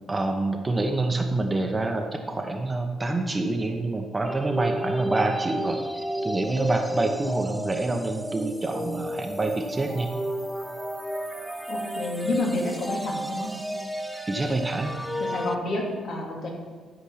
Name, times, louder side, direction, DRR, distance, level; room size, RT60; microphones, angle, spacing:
voice 1, 0.1-5.8 6.2-10.1 14.3-14.9, right 2 dB, 20° right, 4 dB, 0.9 m, -27 dB
sound 1, 4.2-15.5, equal, 5° right, 0.6 m, -32 dB
voice 2, 11.7-13.5 15.2-16.5, left 2 dB, 65° left, -1 dB, 2.4 m, -29 dB
11.5 x 5.1 x 5.8 m, 1.5 s
cardioid pair, 90°, 0 cm